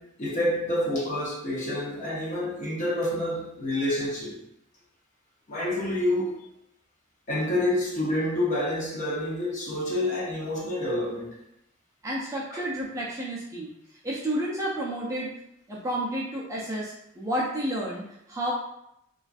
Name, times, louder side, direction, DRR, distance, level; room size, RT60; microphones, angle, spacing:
voice 1, 0.0-4.4 5.5-6.4 7.3-11.4 12.5-12.6, left 1 dB, 35° left, 0.6 m, -28 dB
voice 2, 12.0-13.7 14.0-15.3 15.7-18.5, right 1 dB, 15° right, 0.3 m, -31 dB
2.4 x 2.2 x 2.4 m
head